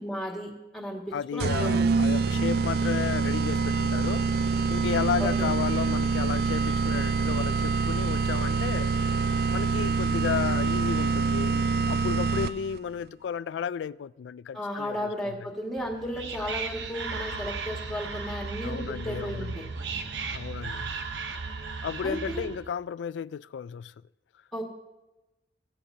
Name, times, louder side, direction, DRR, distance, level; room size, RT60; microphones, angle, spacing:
voice 1, 0.0-1.9 5.2-5.5 14.5-19.6 22.0-22.5 24.5-24.6, equal, ahead, 2.0 m, -34 dB
voice 2, 1.1-4.3 4.7-8.9 9.5-15.4 18.6-19.7 20.3-20.9 21.8-23.9, left 7 dB, 85° left, 0.3 m, -33 dB
sound 1, 1.4-12.8, right 4 dB, 60° right, 0.3 m, -25 dB
Whispering, 15.8-22.7, right 4 dB, 80° right, 1.0 m, -36 dB
16.0 x 16.0 x 2.8 m
head